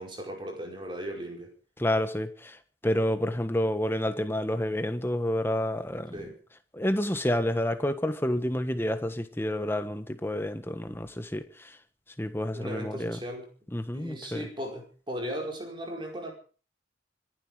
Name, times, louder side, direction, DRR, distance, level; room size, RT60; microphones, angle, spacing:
voice 1, 0.0-1.5 6.1-6.4 12.5-13.5 13.9-16.3, equal, 25° right, 5.0 m, -37 dB
voice 2, 1.8-2.6 2.8-6.1 6.7-11.8 12.2-13.2 13.7-14.4, left 1 dB, 10° left, 1.3 m, -29 dB
25.5 x 11.5 x 5.0 m
head